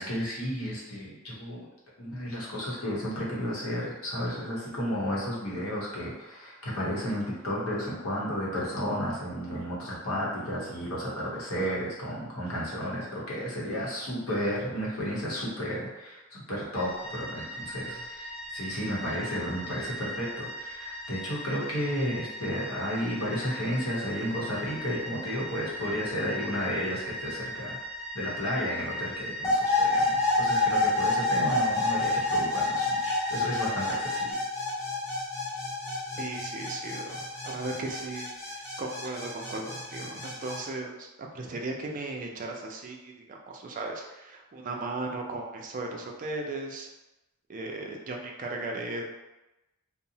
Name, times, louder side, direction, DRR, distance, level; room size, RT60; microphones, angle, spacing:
voice 1, 0.0-1.7 2.0-27.8 28.1-34.3, equal, 80° left, -5 dB, 0.8 m, -32 dB
sound 1, 16.7-34.3, equal, 55° left, 0.8 m, -39 dB
sound 2, 29.4-40.6, left 2 dB, 10° left, 0.5 m, -28 dB
voice 2, 36.2-46.9 47.5-49.0, right 2 dB, 40° right, 1 dB, 0.4 m, -36 dB
2.7 x 2.0 x 2.7 m, 1.0 s
head